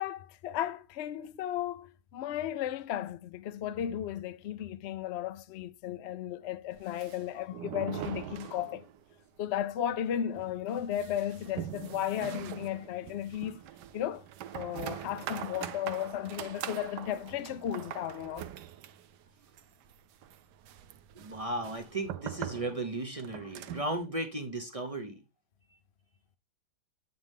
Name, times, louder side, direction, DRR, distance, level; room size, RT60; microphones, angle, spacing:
voice 1, 0.0-8.9 9.4-13.6 13.9-14.3 14.5-18.5, left 10 dB, 90° left, 0.5 m, -35 dB
sound 1, 6.7-9.1 9.4-9.5 9.8-9.9 10.3-24.0, right 11 dB, 70° right, 1.2 m, -43 dB
voice 2, 21.1-25.2, right 2 dB, 45° right, 0.4 m, -35 dB
7.7 x 5.8 x 3.6 m
omnidirectional pair, 2.0 m